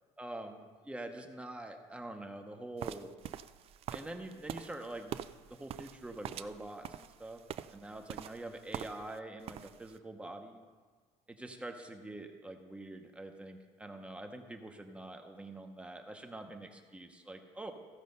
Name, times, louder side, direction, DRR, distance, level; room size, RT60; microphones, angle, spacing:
voice 1, 0.2-3.2 3.9-5.2 5.5-7.4 7.7-10.6 11.3-17.7, right 2 dB, 10° right, 5 dB, 0.9 m, -45 dB
sound 1, 2.8-9.2 9.4-9.9, right 10 dB, 45° right, 0.4 m, -44 dB
15.0 x 5.4 x 5.3 m, 1.5 s
cardioid pair, 120°, 14 cm